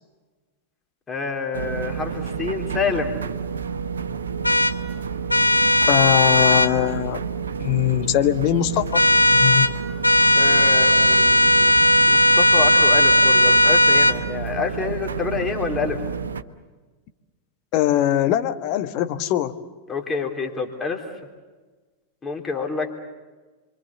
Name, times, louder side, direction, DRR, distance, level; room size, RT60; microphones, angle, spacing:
voice 1, 1.1-3.2 10.4-11.7 12.1-16.0 19.9-21.0 22.2-23.0, left 5 dB, 20° left, 3 dB, 3.3 m, -28 dB
sound 1, 1.5-16.4, right 6 dB, 70° right, 1.1 m, -30 dB
sound 2, 4.4-4.7 5.3-6.7 8.9-9.7 10.0-14.2, equal, 85° left, 0.9 m, -16 dB
voice 2, 5.9-7.2 7.6-9.0 9.3-9.7 17.7-19.5, left 12 dB, 45° left, 8 dB, 1.4 m, -21 dB
28.0 x 24.0 x 7.1 m, 1.3 s
figure-of-eight pair, 90°, 0 cm